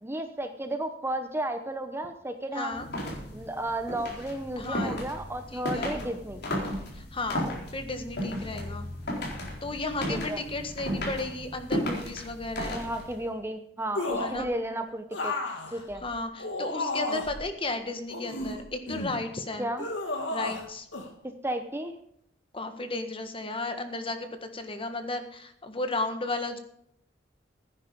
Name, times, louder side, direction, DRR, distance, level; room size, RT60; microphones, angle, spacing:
voice 1, 0.0-2.8 3.3-6.4 10.1-10.4 12.7-15.3 15.7-16.0 19.6-19.9 21.4-21.9, right 1 dB, 15° right, 7 dB, 0.9 m, -33 dB
voice 2, 2.5-2.9 4.6-5.0 5.5-5.9 6.9-7.5 7.7-8.9 9.6-12.8 14.2-14.5 15.9-19.7 20.3-20.9 22.5-26.6, left 2 dB, 30° left, 7 dB, 1.6 m, -34 dB
sound 1, 2.7-13.2, equal, 60° left, 4.2 m, -34 dB
sound 2, 13.9-14.5 15.1-17.4 18.1-19.2 19.8-20.6 20.9-21.1, left 2 dB, 75° left, 2.3 m, -33 dB
16.0 x 9.8 x 5.3 m, 0.73 s
head